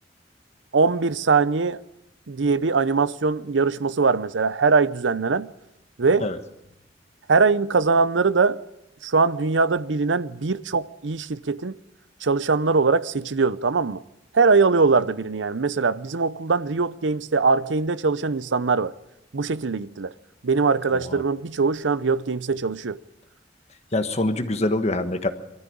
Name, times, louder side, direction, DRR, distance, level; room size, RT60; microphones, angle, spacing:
voice 1, 0.7-1.8 2.3-5.5 6.0-6.3 7.3-8.6 9.0-11.7 12.2-14.0 14.3-18.9 19.3-20.1 20.4-23.0, right 4 dB, 90° right, 0.7 m, -21 dB
voice 2, 23.9-25.3, left 2 dB, 35° left, 1.4 m, -25 dB
23.0 x 13.5 x 8.6 m
head